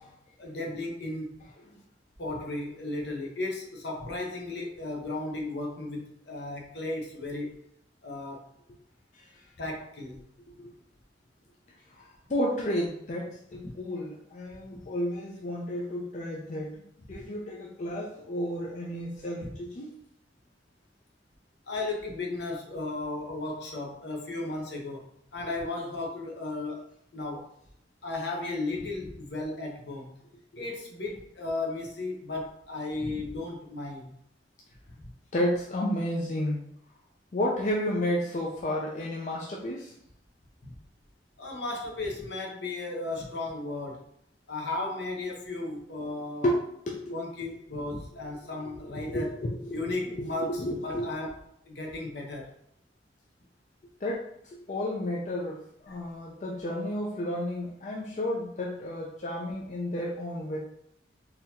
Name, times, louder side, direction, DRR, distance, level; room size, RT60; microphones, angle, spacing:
voice 1, 0.4-1.4 2.2-7.6 8.0-8.5 9.6-10.2 14.7-14.8 19.4-19.5 21.7-26.8 27.1-27.5 28.0-30.2 30.6-34.1 35.0-35.1 40.6-40.7 41.4-44.0 44.5-46.5 47.1-49.3 49.7-51.4 51.6-52.5 55.9-56.0, left 2 dB, 70° left, 0 dB, 0.9 m, -35 dB
voice 2, 11.9-16.7 17.1-19.9 30.5-30.6 35.3-36.6 37.3-39.9 46.4-46.6 46.9-47.1 48.9-51.1 54.0-60.6, left 1 dB, 40° left, -3 dB, 0.4 m, -32 dB
3.9 x 2.8 x 2.8 m, 0.74 s
head